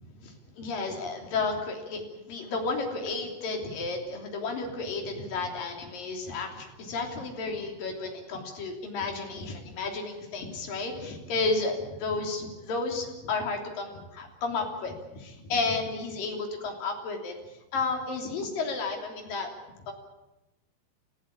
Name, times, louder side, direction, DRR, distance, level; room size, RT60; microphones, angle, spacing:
voice 1, 0.2-17.3 17.7-19.5 19.8-19.9, left 3 dB, 50° left, 3 dB, 4.6 m, -32 dB
29.5 x 15.0 x 8.7 m, 1.0 s
omnidirectional pair, 5.2 m